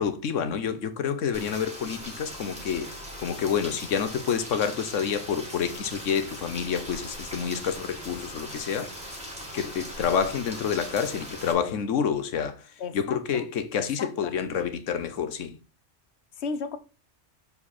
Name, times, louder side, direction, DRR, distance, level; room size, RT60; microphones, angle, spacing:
voice 1, 0.0-2.9 3.2-9.0 9.5-12.6 12.9-15.5, left 7 dB, 85° left, 1.2 m, -28 dB
Rain, 1.3-11.5, equal, 5° right, 2.2 m, -40 dB
voice 2, 12.8-13.5 13.8-14.3 16.4-16.8, left 5 dB, 65° left, 1.1 m, -35 dB
6.9 x 4.9 x 4.2 m
omnidirectional pair, 1.2 m